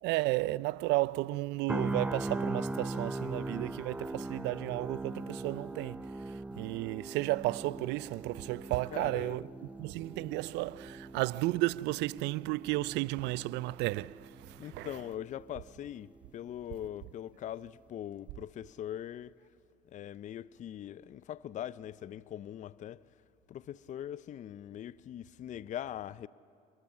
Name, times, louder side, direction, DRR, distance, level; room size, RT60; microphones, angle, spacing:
voice 1, 0.0-9.5 9.8-14.9, right 19 dB, 60° right, 0.5 m, -33 dB
sound 1, 1.7-15.7 16.0-16.3, right 2 dB, 5° right, 0.5 m, -40 dB
voice 2, 8.9-9.4 14.6-19.3 19.9-23.0 23.5-26.3, left 11 dB, 40° left, 0.5 m, -42 dB
26.0 x 22.5 x 8.6 m
hypercardioid pair, 75°, 20 cm